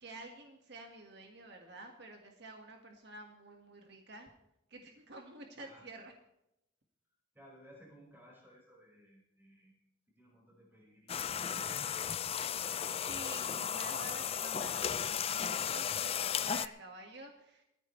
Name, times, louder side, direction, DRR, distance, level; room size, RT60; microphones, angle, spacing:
voice 1, 0.0-4.3 4.7-6.1 13.1-17.6, right 2 dB, 60° right, 2 dB, 1.8 m, -50 dB
voice 2, 7.3-9.8 10.2-12.7, equal, 10° right, -3 dB, 5.4 m, -60 dB
sound 1, 11.1-16.7, left 8 dB, 30° left, 0.4 m, -35 dB
20.0 x 14.0 x 3.3 m, 0.84 s
head